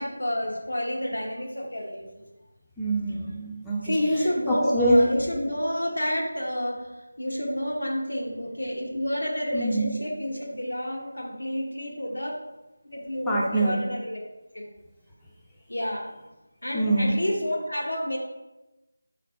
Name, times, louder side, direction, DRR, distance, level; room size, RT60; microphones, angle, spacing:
voice 1, 0.0-2.1 3.8-6.9 7.2-12.3 12.9-14.2 14.5-14.7 15.7-16.1 16.6-18.2, equal, 85° left, -1 dB, 1.1 m, -29 dB
voice 2, 2.8-3.9 4.5-5.0 9.5-9.9 13.3-13.7 16.7-17.2, right 1 dB, 5° left, -7 dB, 0.5 m, -24 dB
3.9 x 3.2 x 4.2 m, 1.0 s
figure-of-eight pair, 165°, 0 cm